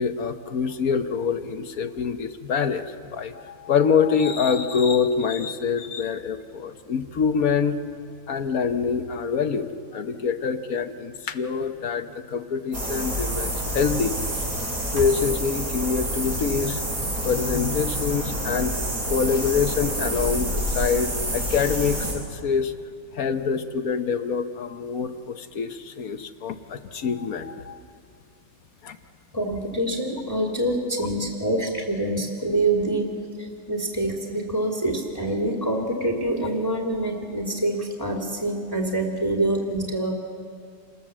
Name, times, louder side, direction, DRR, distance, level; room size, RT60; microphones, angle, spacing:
voice 1, 0.0-7.8 8.3-14.1 14.9-18.7 19.1-22.7 23.1-27.8 28.8-29.0, left 6 dB, 55° left, 8 dB, 1.3 m, -25 dB
sound 1, 12.7-22.1, right 1 dB, 50° right, 6.9 m, -28 dB
voice 2, 29.3-40.1, right 1 dB, 10° left, -1 dB, 2.4 m, -26 dB
28.0 x 20.0 x 7.4 m, 2.3 s
omnidirectional pair, 1.9 m